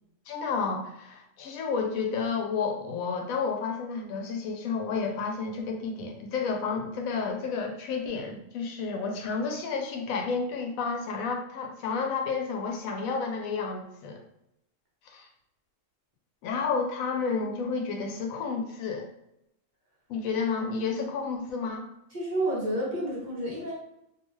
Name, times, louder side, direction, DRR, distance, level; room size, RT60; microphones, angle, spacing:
voice 1, 0.3-14.2 15.0-15.3 16.4-19.1 20.1-21.9, left 5 dB, 85° left, 3 dB, 1.0 m, -31 dB
voice 2, 22.1-23.7, right 1 dB, 45° right, -6 dB, 0.7 m, -30 dB
2.5 x 2.3 x 3.0 m, 0.84 s
omnidirectional pair, 1.4 m